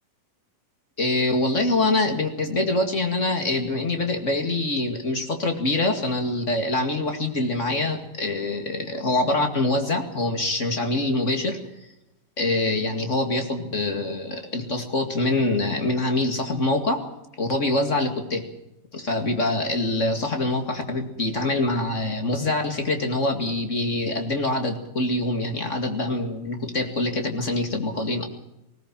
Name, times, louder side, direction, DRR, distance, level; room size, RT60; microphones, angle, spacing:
voice 1, 1.0-11.9 12.4-17.0 17.4-18.4 18.9-28.3, left 2 dB, 25° left, 5 dB, 1.9 m, -25 dB
20.0 x 18.0 x 7.5 m, 0.88 s
omnidirectional pair, 4.0 m